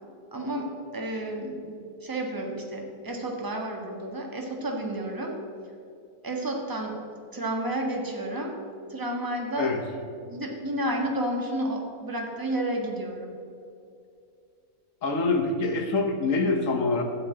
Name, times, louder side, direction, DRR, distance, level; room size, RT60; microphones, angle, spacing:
voice 1, 0.3-5.4 6.2-7.0 7.3-8.6 8.9-9.7 10.2-13.3, right 1 dB, 15° right, 1 dB, 1.3 m, -31 dB
voice 2, 15.0-17.0, left 3 dB, 60° left, 4 dB, 1.4 m, -25 dB
12.0 x 4.8 x 8.6 m, 2.4 s
omnidirectional pair, 1.6 m